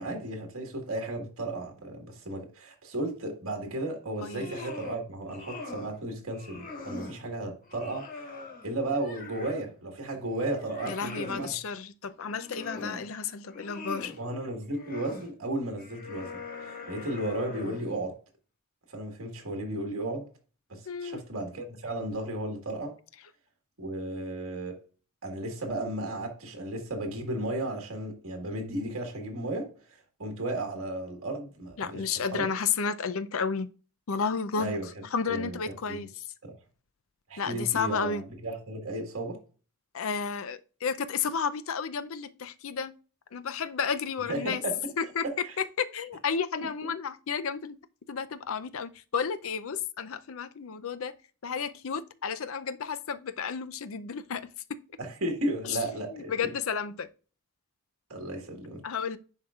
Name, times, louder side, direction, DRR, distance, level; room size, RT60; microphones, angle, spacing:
voice 1, 0.0-8.3 8.6-11.6 14.2-18.2 18.9-20.3 20.7-23.0 23.8-24.8 25.2-32.1 32.3-32.5 34.6-36.1 36.4-36.5 37.3-39.4 44.3-44.8 45.2-45.6 46.6-46.7 55.0-56.5 58.1-58.8, right 1 dB, 70° right, 1.6 m, -34 dB
sound 1, 4.1-5.0 5.3-6.0 6.3-7.2 7.7-9.7 10.1-11.5 12.2-13.1 13.4-14.2 14.7-15.3 15.8-17.9, left 3 dB, 40° left, 1.8 m, -42 dB
voice 2, 4.2-4.5 10.9-14.1 20.9-21.2 31.8-33.7 34.1-34.7 35.1-36.2 37.4-38.2 39.9-43.0 43.3-44.6 45.0-47.8 48.1-51.1 51.4-54.8 55.7-55.8 56.1-57.1 58.8-59.2, left 6 dB, 70° left, 0.5 m, -32 dB
10.5 x 4.6 x 2.4 m
head